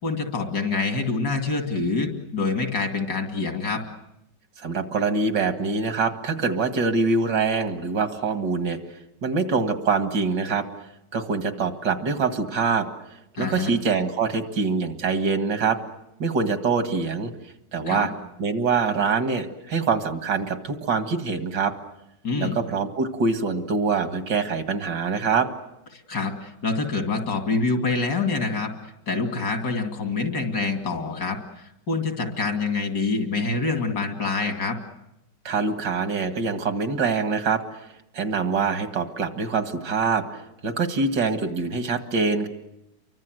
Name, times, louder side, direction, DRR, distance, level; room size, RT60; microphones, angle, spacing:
voice 1, 0.0-3.8 13.4-13.7 17.8-18.1 22.2-22.6 26.1-34.8, left 4 dB, 80° left, 5 dB, 3.2 m, -26 dB
voice 2, 4.6-8.8 9.2-10.7 11.1-12.9 13.4-15.8 16.2-17.3 17.7-18.1 18.4-21.7 22.4-25.5 35.4-37.8 38.1-42.5, right 4 dB, 90° right, 8 dB, 2.5 m, -24 dB
29.5 x 24.0 x 7.8 m, 0.88 s
omnidirectional pair, 1.8 m